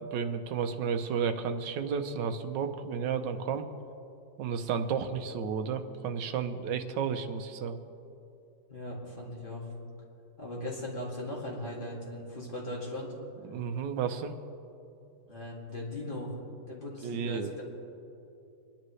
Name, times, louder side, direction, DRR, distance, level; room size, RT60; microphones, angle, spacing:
voice 1, 0.0-3.6 4.4-7.8 13.5-14.3 17.0-17.5, right 6 dB, 80° right, 8 dB, 1.4 m, -32 dB
voice 2, 8.7-9.7 10.4-13.1 15.3-16.4 16.7-17.6, left 1 dB, 30° left, -4 dB, 2.5 m, -38 dB
27.0 x 10.5 x 3.2 m, 2.7 s
omnidirectional pair, 2.0 m